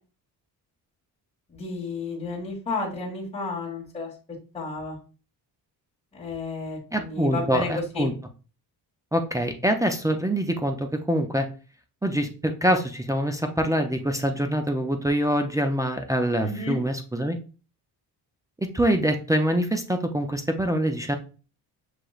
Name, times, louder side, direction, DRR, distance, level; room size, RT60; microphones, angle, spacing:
voice 1, 1.5-4.1 4.5-5.0 6.1-8.1 16.4-16.8, left 3 dB, 15° left, -7 dB, 1.5 m, -32 dB
voice 2, 6.9-8.1 9.1-11.5 12.0-17.4 18.7-21.2, equal, 10° right, 4 dB, 0.4 m, -25 dB
6.4 x 2.9 x 2.3 m, 0.35 s
cardioid pair, 120°, 41 cm